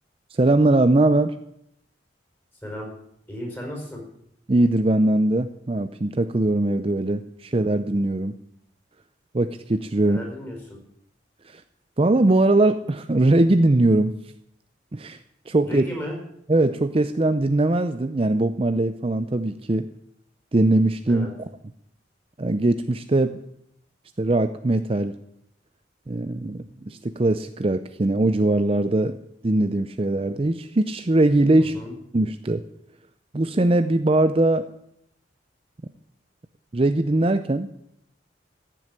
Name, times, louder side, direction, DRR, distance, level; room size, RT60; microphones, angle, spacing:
voice 1, 0.3-1.4 4.5-8.3 9.3-10.2 11.5-11.6 12.0-14.1 14.9-15.2 15.5-15.8 16.5-19.9 20.5-21.3 22.4-23.4 24.2-25.2 26.1-29.2 29.4-31.8 32.1-32.6 33.3-34.7 36.7-37.7, right 2 dB, 30° right, 10 dB, 0.5 m, -21 dB
voice 2, 3.3-4.0 10.0-10.8 15.6-16.2 21.1-21.3 31.6-31.9, equal, 10° left, -1 dB, 5.4 m, -34 dB
15.0 x 7.8 x 9.7 m, 0.74 s
head